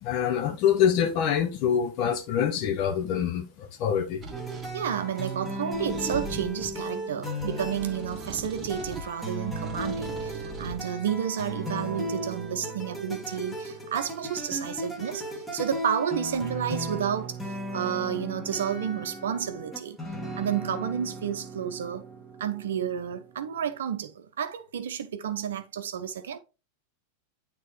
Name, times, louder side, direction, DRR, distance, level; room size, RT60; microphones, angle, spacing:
voice 1, 0.0-4.2, left 8 dB, 40° left, 0.7 m, -25 dB
sound 1, 4.2-4.7 5.7-6.8 7.4-9.1 9.5-10.8, right 2 dB, 20° right, 1.3 m, -40 dB
sound 2, 4.3-23.7, right 1 dB, 10° left, 1.6 m, -36 dB
voice 2, 4.7-20.0 20.4-22.0 22.4-26.4, right 8 dB, 60° right, 0.6 m, -31 dB
9.2 x 3.6 x 3.1 m
figure-of-eight pair, 90°, 0 cm